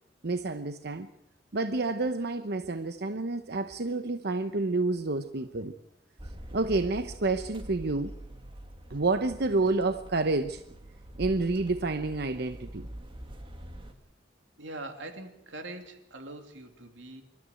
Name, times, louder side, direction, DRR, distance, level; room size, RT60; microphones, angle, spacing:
voice 1, 0.2-1.1 1.5-5.7 6.5-8.1 8.9-10.6 11.2-12.9, right 3 dB, 60° right, 9 dB, 0.9 m, -29 dB
sound 1, 6.2-13.9, right 1 dB, 30° right, 2.0 m, -44 dB
voice 2, 14.6-17.2, right 2 dB, 90° right, 6 dB, 3.0 m, -43 dB
25.0 x 13.0 x 9.1 m, 0.80 s
head